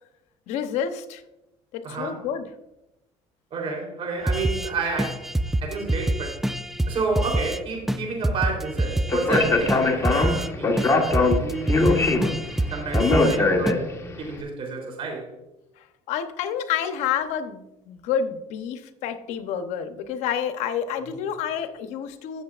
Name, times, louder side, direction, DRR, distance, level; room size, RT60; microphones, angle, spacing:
voice 1, 0.5-1.2 1.7-2.4 15.8-22.4, left 8 dB, 75° left, 9 dB, 0.9 m, -29 dB
voice 2, 1.8-2.2 3.5-5.3 5.6-6.4 6.9-11.9 12.7-13.9 14.2-15.3, right 4 dB, 55° right, 1 dB, 3.5 m, -30 dB
sound 1, 4.3-4.7 5.0-7.6 7.9-10.5 10.8-13.4 13.7-13.8, right 1 dB, 5° right, 0.3 m, -26 dB
Speech, 9.1-14.2, left 3 dB, 25° left, 1.4 m, -22 dB
15.5 x 6.7 x 2.5 m, 0.92 s
cardioid pair, 105°, 12 cm